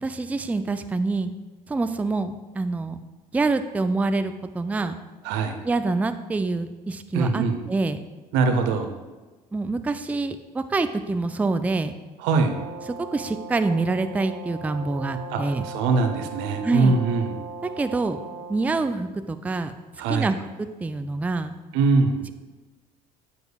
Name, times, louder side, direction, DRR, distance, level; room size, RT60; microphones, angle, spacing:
voice 1, 0.0-1.3 1.7-3.0 3.3-4.9 5.6-7.4 7.7-8.0 9.5-11.9 13.1-15.6 16.6-17.0 17.8-18.2 18.5-19.7 20.1-21.5, right 3 dB, 5° right, 10 dB, 0.4 m, -26 dB
voice 2, 5.2-5.6 7.1-7.6 8.3-8.9 12.2-12.5 15.3-17.3 20.0-20.3 21.7-22.3, right 4 dB, 60° right, 6 dB, 0.9 m, -22 dB
Brass instrument, 12.4-18.6, right 3 dB, 25° right, 1.6 m, -38 dB
9.6 x 7.8 x 2.3 m, 1.2 s
figure-of-eight pair, 60°, 21 cm